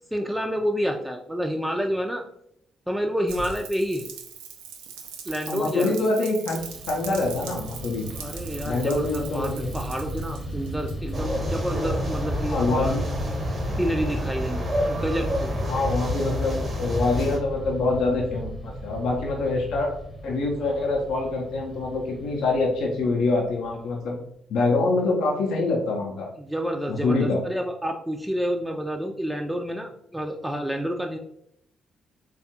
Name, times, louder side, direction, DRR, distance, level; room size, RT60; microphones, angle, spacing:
voice 1, 0.1-2.2 2.9-4.0 5.3-6.0 8.1-13.1 13.8-15.5 26.4-31.2, equal, 5° right, 2 dB, 0.4 m, -29 dB
Rain, 3.3-11.4, right 6 dB, 75° right, 0.3 m, -41 dB
voice 2, 5.5-6.6 6.9-8.1 8.6-9.7 12.5-13.0 15.7-20.0 20.2-24.2 24.5-26.3 26.9-27.4, left 3 dB, 65° left, -1 dB, 0.5 m, -25 dB
Fixed-wing aircraft airplane, 6.6-24.0, equal, 25° left, 0.7 m, -35 dB
sound 1, 11.1-17.4, equal, 40° right, 0.7 m, -29 dB
3.4 x 2.3 x 2.7 m, 0.70 s
figure-of-eight pair, 40°, 0 cm